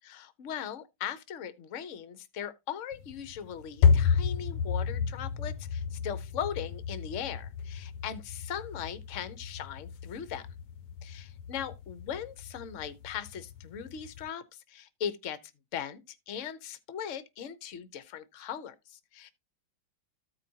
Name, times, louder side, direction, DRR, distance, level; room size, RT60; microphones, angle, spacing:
voice 1, 0.0-10.4 11.0-15.4 15.7-19.3, left 8 dB, 55° left, 0.9 m, -39 dB
sound 1, 2.9-14.3, left 6 dB, 75° left, 1.2 m, -32 dB
14.0 x 4.9 x 2.8 m
omnidirectional pair, 2.2 m